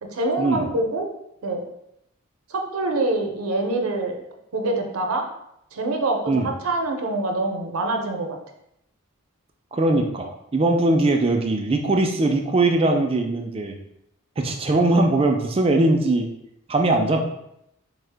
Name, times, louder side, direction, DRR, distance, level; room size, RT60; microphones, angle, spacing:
voice 1, 0.0-1.1 1.4-1.6 2.5-4.2 4.5-5.3 5.7-8.4, right 2 dB, 80° right, 3 dB, 0.5 m, -25 dB
voice 2, 9.7-13.8 14.4-16.3 16.7-17.3, right 2 dB, 25° right, 3 dB, 0.3 m, -20 dB
3.7 x 2.0 x 3.3 m, 0.79 s
head